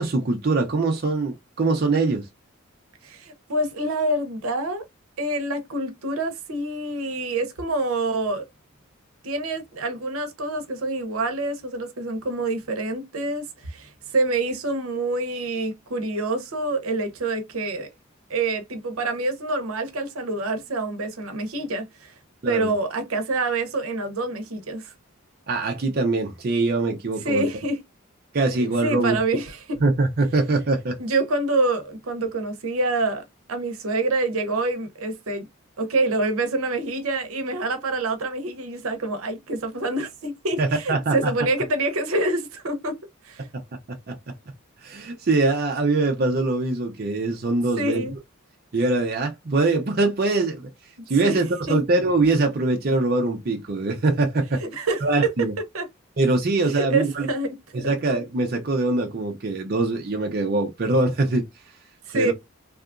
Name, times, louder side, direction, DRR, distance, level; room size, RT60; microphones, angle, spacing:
voice 1, 0.0-2.3 22.4-22.7 25.5-27.5 28.3-29.2 29.8-31.0 40.6-41.3 43.5-43.6 43.9-44.3 44.8-48.1 48.7-50.7 51.1-54.6 55.0-55.5 56.2-57.3 57.7-61.5 62.1-62.3, right 3 dB, 45° right, 0.5 m, -23 dB
voice 2, 3.0-4.8 5.2-8.4 9.2-17.9 18.3-22.1 22.5-24.9 27.2-27.8 28.6-29.8 31.0-33.2 33.5-35.5 35.8-43.0 43.2-43.5 47.8-48.1 51.2-51.4 51.7-51.8 54.6-55.3 55.7-55.9 56.7-57.6 57.8-57.9 62.1-62.3, right 2 dB, 80° right, 0.7 m, -26 dB
2.8 x 2.3 x 2.3 m
head